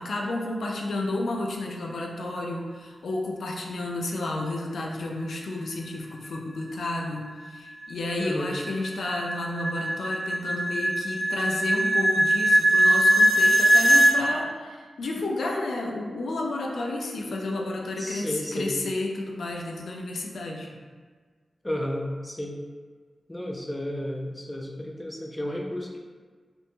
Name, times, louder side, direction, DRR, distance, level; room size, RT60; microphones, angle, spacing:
voice 1, 0.0-20.7, left 2 dB, 90° left, 0 dB, 0.3 m, -31 dB
sound 1, 7.0-14.1, equal, 70° right, 0.4 m, -22 dB
voice 2, 8.2-8.5 18.0-18.7 21.6-22.6 23.3-26.0, left 1 dB, 10° left, -1 dB, 0.3 m, -32 dB
2.9 x 2.2 x 2.6 m, 1.5 s
wide cardioid pair, 130°, 0 cm